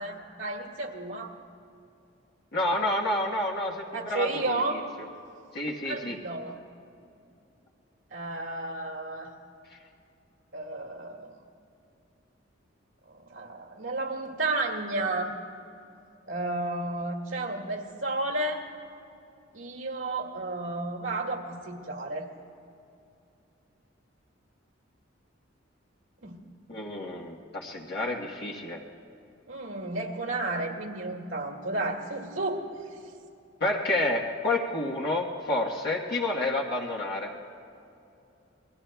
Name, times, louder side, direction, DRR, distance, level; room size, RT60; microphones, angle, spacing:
voice 1, 0.0-1.3 3.9-4.8 5.8-6.6 8.1-9.3 10.5-11.3 13.1-15.3 16.3-18.6 19.5-22.3 26.2-26.4 29.5-32.6, right 2 dB, 85° right, 0 dB, 2.0 m, -32 dB
voice 2, 2.5-4.8 5.5-6.2 26.7-28.8 33.6-37.3, left 2 dB, 55° left, -3 dB, 1.2 m, -29 dB
28.0 x 21.5 x 2.3 m, 2.7 s
head